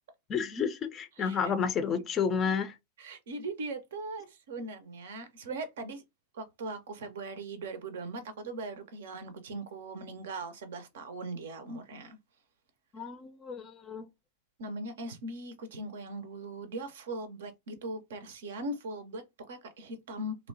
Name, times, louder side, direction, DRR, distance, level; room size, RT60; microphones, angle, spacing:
voice 1, 0.3-2.8 12.9-14.1, left 6 dB, 30° left, 0.4 m, -31 dB
voice 2, 1.2-1.5 3.0-6.0 6.3-12.2 14.6-20.4, right 2 dB, 60° right, 0.5 m, -40 dB
2.8 x 2.1 x 2.6 m
figure-of-eight pair, 90°, 0 cm